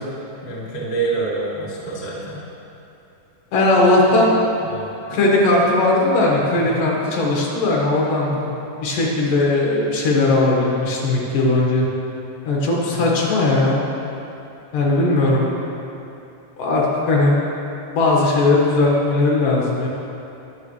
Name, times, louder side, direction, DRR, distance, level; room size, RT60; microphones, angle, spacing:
voice 1, 0.4-2.4 4.6-4.9 6.5-6.8 8.4-8.5 12.9-13.2, right 3 dB, 20° left, -7 dB, 1.4 m, -27 dB
voice 2, 3.5-4.4 5.1-8.3 8.8-11.9 12.5-13.8 14.7-15.7 16.6-17.4 17.9-19.9, left 2 dB, 65° left, -3 dB, 3.1 m, -18 dB
21.0 x 7.7 x 3.3 m, 2.8 s
omnidirectional pair, 4.2 m